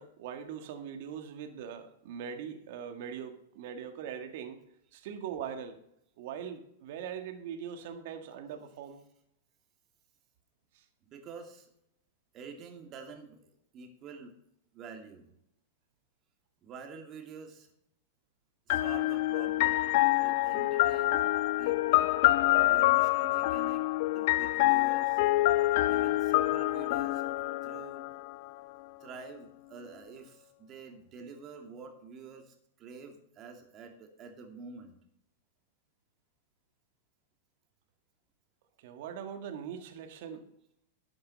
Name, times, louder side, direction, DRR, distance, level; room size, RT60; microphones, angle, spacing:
voice 1, 0.0-4.6 4.9-5.8 6.2-9.0 10.7-10.9 38.8-40.5, right 8 dB, 60° right, 7 dB, 1.9 m, -41 dB
voice 2, 11.1-11.7 12.3-13.4 13.7-14.3 14.7-15.3 16.6-17.7 18.7-21.3 21.6-22.2 22.5-23.8 24.1-25.2 25.9-27.3 27.6-28.0 29.0-35.0, right 4 dB, 35° right, 4 dB, 2.6 m, -47 dB
sound 1, 18.7-28.5, left 17 dB, 60° left, 0.6 m, -26 dB
12.5 x 7.8 x 5.4 m, 0.76 s
hypercardioid pair, 130°, 0 cm